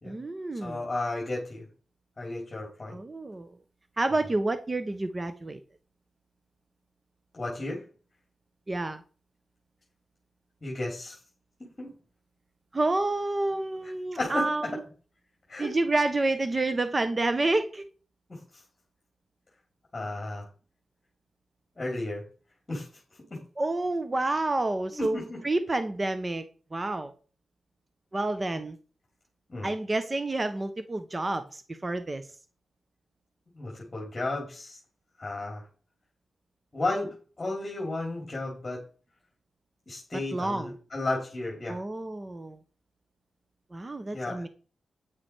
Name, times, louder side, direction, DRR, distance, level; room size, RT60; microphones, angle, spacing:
voice 1, 0.0-0.8 2.9-3.5 4.0-5.6 8.7-9.0 12.7-14.8 15.6-17.9 23.6-26.4 26.7-27.1 28.1-28.8 29.6-32.3 40.3-40.7 41.7-42.6 43.7-44.5, right 2 dB, 25° right, 10 dB, 0.8 m, -29 dB
voice 2, 0.6-1.7 2.2-3.0 7.3-7.8 10.6-11.2 11.8-11.9 13.8-13.9 14.2-14.7 15.5-15.7 18.3-18.4 19.9-20.5 21.8-22.2 22.7-22.9 23.3-23.4 24.9-25.4 29.5-29.7 33.5-34.8 35.2-35.6 36.7-38.8 39.9-41.8 44.1-44.4, left 2 dB, 25° left, -1 dB, 2.8 m, -33 dB
9.0 x 6.3 x 4.7 m, 0.38 s
wide cardioid pair, 100°, 0 cm